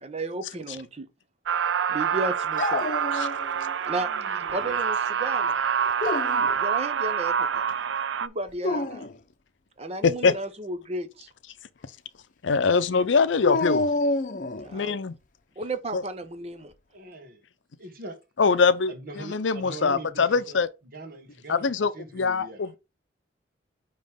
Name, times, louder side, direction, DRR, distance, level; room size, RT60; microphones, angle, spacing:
voice 1, 0.0-1.1 1.9-2.9 3.9-4.1 4.5-5.6 6.6-7.6 8.2-9.1 9.8-11.3 14.6-15.0 15.6-16.7, right 2 dB, 35° right, 0.8 m, -33 dB
sound 1, 1.5-8.3, right 7 dB, 80° right, 0.5 m, -26 dB
Dog, 2.6-3.7 4.1-4.8 5.8-6.6 8.5-9.2 13.4-14.8, left 2 dB, 45° left, 0.7 m, -28 dB
voice 2, 10.0-10.3 12.4-13.9 14.7-15.1 15.9-16.0 18.4-20.7 21.5-22.7, left 5 dB, 85° left, 0.6 m, -23 dB
voice 3, 16.9-17.4 17.8-18.2 18.9-20.6 20.9-22.7, right 1 dB, 50° right, 1.5 m, -41 dB
9.1 x 3.1 x 3.6 m
head